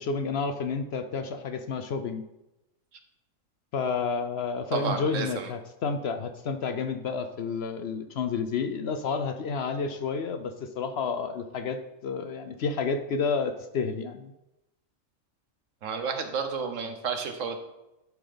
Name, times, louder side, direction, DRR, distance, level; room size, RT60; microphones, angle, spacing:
voice 1, 0.0-2.2 3.7-14.3, left 5 dB, 60° left, 8 dB, 0.8 m, -30 dB
voice 2, 4.7-5.5 15.8-17.6, right 6 dB, 75° right, 6 dB, 1.3 m, -31 dB
10.5 x 3.9 x 5.1 m, 0.93 s
omnidirectional pair, 1.3 m